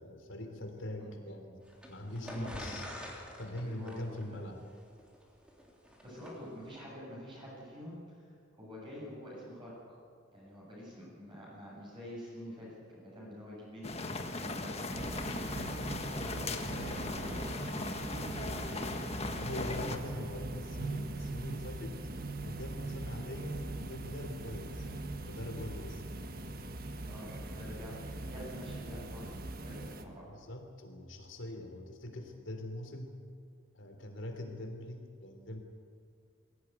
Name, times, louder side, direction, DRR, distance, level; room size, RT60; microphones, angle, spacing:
voice 1, 0.0-1.6 1.9-2.9 3.4-4.6 19.4-22.0 22.4-26.0 27.2-27.7 30.3-33.1 33.7-35.6, left 1 dB, 75° left, 4 dB, 3.6 m, -43 dB
sound 1, 1.6-6.4, equal, 5° right, 3.4 m, -46 dB
voice 2, 2.0-2.8 3.5-4.4 6.0-8.2 8.6-10.0 10.3-17.7 18.0-19.0 27.0-30.3, equal, 25° right, -6 dB, 7.1 m, -47 dB
sound 2, 13.8-20.0, left 2 dB, 30° left, 1.5 m, -38 dB
sound 3, 14.9-30.0, right 2 dB, 50° right, 1.5 m, -41 dB
22.5 x 17.0 x 9.3 m, 2.2 s
head